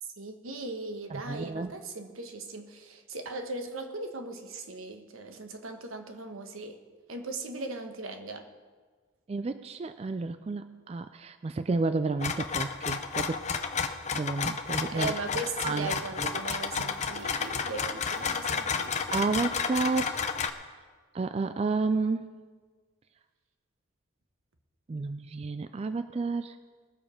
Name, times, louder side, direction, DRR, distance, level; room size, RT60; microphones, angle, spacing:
voice 1, 0.2-6.8 7.1-8.5 14.9-19.2, right 3 dB, 85° right, 5 dB, 1.2 m, -38 dB
voice 2, 1.1-1.7 9.3-13.4 14.1-15.1 15.6-15.9 16.2-16.4 16.8-16.9 19.1-20.3 21.1-22.4 24.9-26.6, right 3 dB, 30° right, 11 dB, 0.3 m, -31 dB
sound 1, 12.2-20.5, left 6 dB, 35° left, 0.6 m, -31 dB
20.0 x 6.9 x 5.0 m, 1.5 s
head